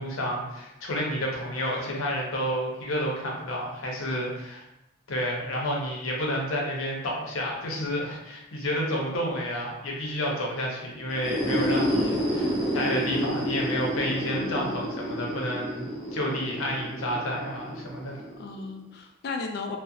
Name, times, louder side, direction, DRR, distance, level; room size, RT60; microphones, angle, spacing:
voice 1, 0.0-4.6 5.1-18.2, equal, 85° left, -2 dB, 0.6 m, -30 dB
sound 1, 11.1-18.7, equal, 20° right, 0.4 m, -30 dB
voice 2, 14.0-14.8 18.3-19.8, left 4 dB, 50° left, 3 dB, 0.3 m, -36 dB
2.4 x 2.0 x 2.6 m, 0.90 s
head